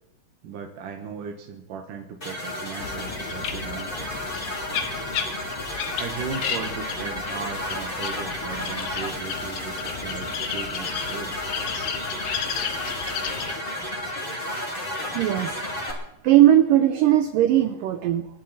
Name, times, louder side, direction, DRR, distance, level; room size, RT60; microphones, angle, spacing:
voice 1, 0.4-4.1 5.9-11.4, right 6 dB, 60° right, 2 dB, 2.7 m, -37 dB
sound 1, 2.2-15.9, left 1 dB, 15° left, 2.7 m, -32 dB
sound 2, 2.8-13.5, left 7 dB, 65° left, 2.7 m, -33 dB
sound 3, 9.1-14.0, right 1 dB, 35° right, 3.3 m, -45 dB
voice 2, 15.1-15.7 16.2-18.3, right 12 dB, 80° right, 9 dB, 1.9 m, -18 dB
26.5 x 11.5 x 4.3 m, 0.84 s
omnidirectional pair, 4.8 m